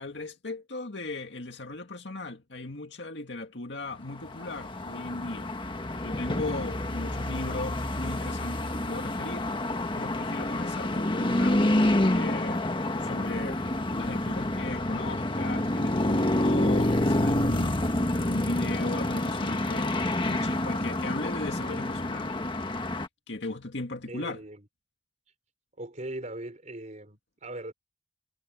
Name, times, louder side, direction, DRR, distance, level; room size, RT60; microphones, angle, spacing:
voice 1, 0.0-5.5 6.0-9.5 9.9-11.8 12.1-12.7 13.0-13.6 13.9-17.8 18.1-22.3 23.3-24.4, left 2 dB, 70° left, 2.2 m, -37 dB
sound 1, 4.2-23.1, left 1 dB, 30° left, 1.5 m, -28 dB
voice 2, 24.1-24.7 25.8-27.7, right 1 dB, 40° right, 4.1 m, -39 dB
head